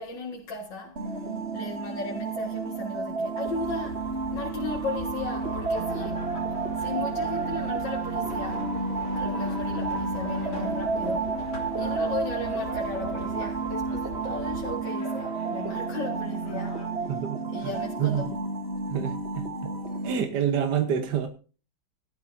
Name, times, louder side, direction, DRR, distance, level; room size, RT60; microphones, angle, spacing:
voice 1, 0.0-6.4 6.7-8.7 9.1-11.4 11.8-17.2 17.5-18.3, left 4 dB, 65° left, 2.5 m, -36 dB
sound 1, 1.0-20.1, right 4 dB, 35° right, 1.5 m, -31 dB
sound 2, 3.5-14.8, left 5 dB, 45° left, 1.6 m, -42 dB
sound 3, 5.1-16.9, left 2 dB, 85° left, 4.0 m, -45 dB
voice 2, 17.1-17.4 18.0-18.2 18.9-19.7 20.0-21.3, right 8 dB, 60° right, 1.7 m, -27 dB
17.5 x 12.5 x 2.7 m
omnidirectional pair, 2.2 m